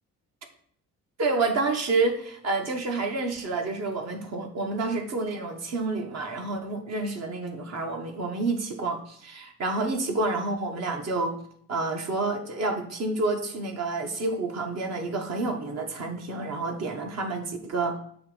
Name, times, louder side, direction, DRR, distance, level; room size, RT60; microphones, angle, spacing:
voice 1, 1.2-11.4 11.7-18.0, right 3 dB, 60° right, 4 dB, 1.1 m, -29 dB
7.1 x 3.0 x 4.9 m, 0.63 s
cardioid pair, 90°, 30 cm